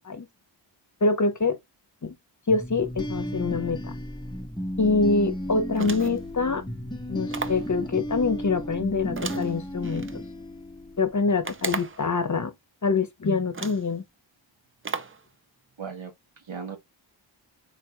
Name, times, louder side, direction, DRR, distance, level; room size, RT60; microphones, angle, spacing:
voice 1, 1.0-1.6 2.0-2.1 2.5-4.0 4.8-6.6 7.1-10.2 11.0-12.5 12.8-14.0, left 4 dB, 40° left, 0.9 m, -25 dB
sound 1, 2.5-11.2, equal, 10° left, 0.7 m, -34 dB
sound 2, 5.7-6.3 7.3-7.7 9.2-10.1 11.4-12.1 13.0-13.1 13.5-13.9 14.8-15.2, right 4 dB, 30° right, 0.5 m, -34 dB
voice 2, 15.8-16.8, right 6 dB, 80° right, 1.5 m, -38 dB
4.6 x 4.1 x 2.3 m
wide cardioid pair, 100°, 46 cm